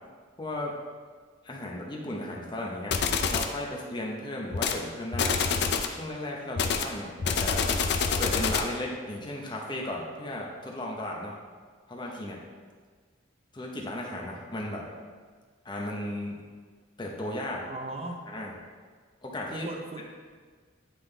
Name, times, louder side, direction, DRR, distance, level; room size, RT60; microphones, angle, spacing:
voice 1, 0.4-0.7 1.4-3.0 3.3-5.4 5.9-7.7 8.2-11.3 11.9-12.4 13.5-14.9 15.6-16.4 17.0-17.6 18.3-18.5 19.2-19.7, left 1 dB, 25° left, -2 dB, 0.9 m, -35 dB
sound 1, 2.9-3.6 4.5-4.8 5.1-6.0 6.6-8.8, left 5 dB, 60° left, 0.5 m, -27 dB
voice 2, 17.7-18.2 19.5-20.0, right 2 dB, 30° right, 2 dB, 0.7 m, -37 dB
10.0 x 3.8 x 3.3 m, 1.6 s
head